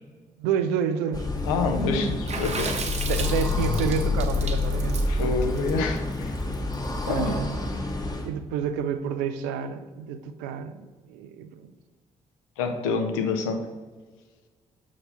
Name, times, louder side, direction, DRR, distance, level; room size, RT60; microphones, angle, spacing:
voice 1, 0.4-1.3 3.1-5.0 7.0-7.6 8.2-11.7, right 7 dB, 65° right, 10 dB, 0.5 m, -29 dB
sound 1, 1.1-8.3, left 2 dB, 20° left, 1.0 m, -28 dB
voice 2, 1.4-2.7 3.0-3.1 5.1-6.3 7.1-7.5 12.6-13.6, left 4 dB, 70° left, 5 dB, 0.7 m, -27 dB
Water / Splash splatter, 2.3-6.7, right 4 dB, 35° right, 0.9 m, -34 dB
sound 2, 3.3-4.5, equal, 5° right, 0.6 m, -35 dB
6.6 x 2.8 x 5.7 m, 1.3 s
figure-of-eight pair, 40°, 19 cm